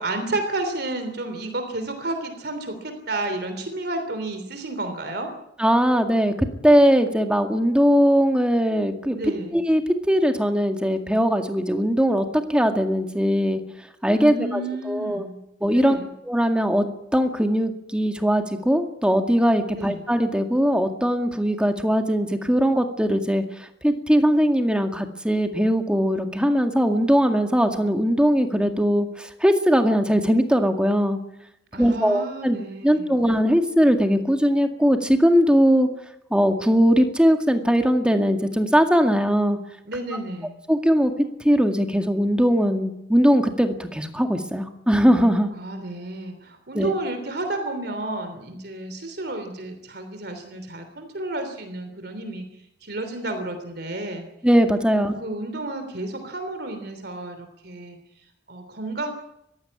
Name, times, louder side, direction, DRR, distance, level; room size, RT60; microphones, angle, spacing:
voice 1, 0.0-5.3 9.1-9.6 14.1-15.4 15.7-16.1 19.7-20.1 31.7-33.2 39.8-40.6 45.5-52.4 52.8-54.3 54.9-58.0 58.5-59.1, right 2 dB, 60° right, 7 dB, 3.2 m, -31 dB
voice 2, 5.6-9.2 9.5-9.8 10.1-13.6 14.0-14.6 14.9-15.2 15.6-16.0 16.3-16.9 17.1-23.4 23.8-31.2 31.8-32.6 32.8-35.9 36.3-39.6 40.7-41.1 41.4-45.5 46.7-46.9 54.4-55.2, equal, 5° right, 5 dB, 2.0 m, -20 dB
22.0 x 15.5 x 9.8 m, 0.81 s
head